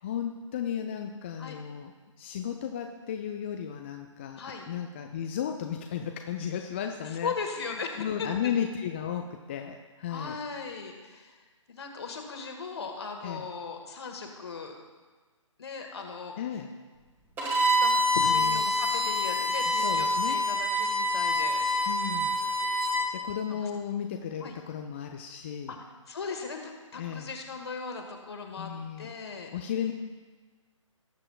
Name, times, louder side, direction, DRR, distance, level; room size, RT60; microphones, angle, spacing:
voice 1, 0.0-1.9 2.2-4.4 4.7-7.3 7.7-10.4 13.2-13.5 16.4-16.7 18.2-18.6 19.7-20.4 21.9-22.4 23.1-25.8 26.9-27.3 28.6-29.1 29.5-29.9, left 8 dB, 20° left, 4 dB, 0.4 m, -34 dB
voice 2, 4.4-4.7 7.2-8.5 10.1-11.4 11.7-14.8 15.6-16.4 17.4-21.6 23.5-23.7 24.4-24.5 25.7-25.8 26.1-28.7 29.0-29.5, left 5 dB, 55° left, 3 dB, 1.7 m, -38 dB
Bowed string instrument, 17.4-23.1, left 1 dB, 10° right, 1.6 m, -26 dB
18.5 x 7.6 x 2.4 m, 1.4 s
figure-of-eight pair, 135°, 17 cm